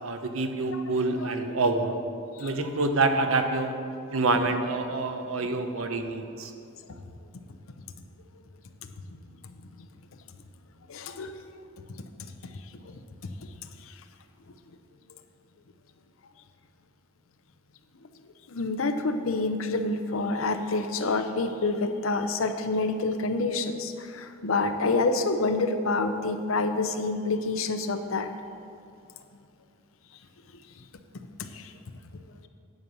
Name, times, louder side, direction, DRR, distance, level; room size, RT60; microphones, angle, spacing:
voice 1, 0.0-2.0 2.4-3.8 4.1-6.5, right 3 dB, 75° right, 6 dB, 0.8 m, -27 dB
voice 2, 10.9-11.3 18.5-23.9 24.4-28.3, left 3 dB, 75° left, 8 dB, 0.6 m, -27 dB
9.7 x 5.4 x 6.8 m, 2.5 s
head